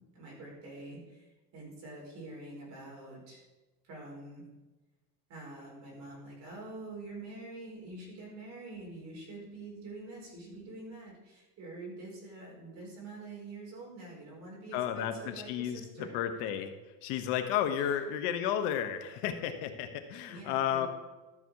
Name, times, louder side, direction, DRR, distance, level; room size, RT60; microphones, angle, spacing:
voice 1, 0.0-3.4 3.8-4.4 5.3-16.2 17.8-18.0 20.2-20.9, right 2 dB, 40° right, -3 dB, 4.5 m, -46 dB
voice 2, 14.7-16.7 17.0-20.9, left 10 dB, 65° left, 7 dB, 1.2 m, -32 dB
13.0 x 7.0 x 4.8 m, 1.1 s
cardioid pair, 165°, 43 cm